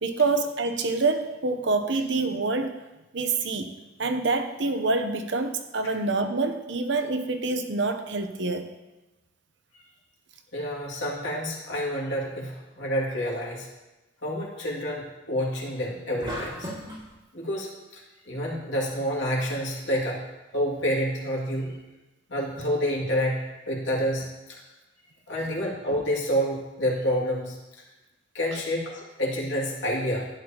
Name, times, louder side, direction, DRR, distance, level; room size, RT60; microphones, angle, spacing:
voice 1, 0.0-2.8 3.1-3.7 4.0-8.7, right 3 dB, 70° right, 7 dB, 0.8 m, -26 dB
voice 2, 10.5-13.7 14.2-16.7 17.3-20.2 20.5-21.8 22.3-24.6 25.3-27.8 28.3-30.3, equal, 80° left, -4 dB, 2.5 m, -28 dB
sound 1, 16.2-17.1, equal, 25° right, 2.2 m, -35 dB
11.5 x 9.6 x 3.0 m, 1.0 s
head